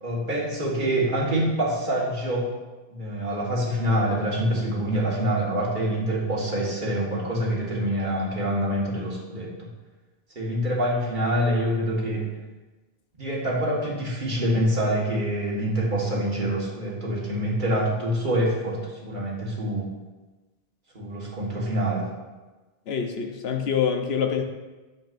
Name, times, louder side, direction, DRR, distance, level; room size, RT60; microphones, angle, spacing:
voice 1, 0.0-2.5 2.9-9.7 10.4-12.3 13.2-19.9 21.0-22.1, right 1 dB, 50° right, -3 dB, 1.7 m, -26 dB
voice 2, 22.9-24.4, left 7 dB, 75° left, 4 dB, 1.1 m, -25 dB
9.5 x 7.2 x 2.6 m, 1.2 s
omnidirectional pair, 1.1 m